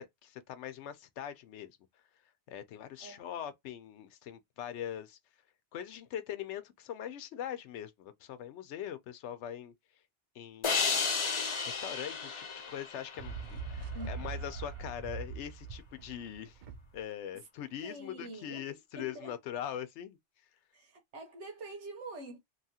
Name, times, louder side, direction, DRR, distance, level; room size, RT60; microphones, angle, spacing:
voice 1, 0.0-1.8 2.5-5.2 5.7-9.7 10.3-11.1 11.7-16.6 16.9-20.2, left 10 dB, 80° left, 0.9 m, -42 dB
voice 2, 3.0-3.4 13.9-14.4 17.8-18.6 19.0-19.3 20.7-22.4, right 1 dB, 85° right, 1.2 m, -45 dB
sound 1, 10.6-13.9, left 5 dB, 45° left, 0.4 m, -33 dB
sound 2, 13.2-17.0, right 5 dB, 60° right, 0.5 m, -41 dB
2.9 x 2.4 x 2.7 m
omnidirectional pair, 1.2 m